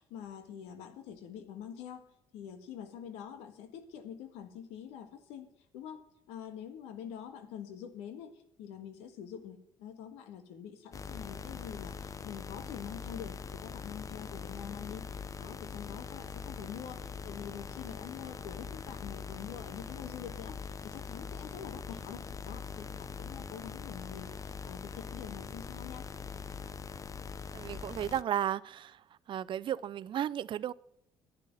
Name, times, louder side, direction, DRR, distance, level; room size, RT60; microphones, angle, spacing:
voice 1, 0.0-26.1, left 8 dB, 85° left, 1.6 m, -46 dB
sound 1, 10.9-28.2, left 5 dB, 30° left, 0.6 m, -42 dB
Wind instrument woodwind instrument, 16.0-21.2, right 5 dB, 35° right, 2.0 m, -65 dB
voice 2, 27.5-29.0 29.3-30.7, right 10 dB, 50° right, 0.5 m, -34 dB
11.0 x 9.0 x 7.5 m
supercardioid pair, 75°, 10 cm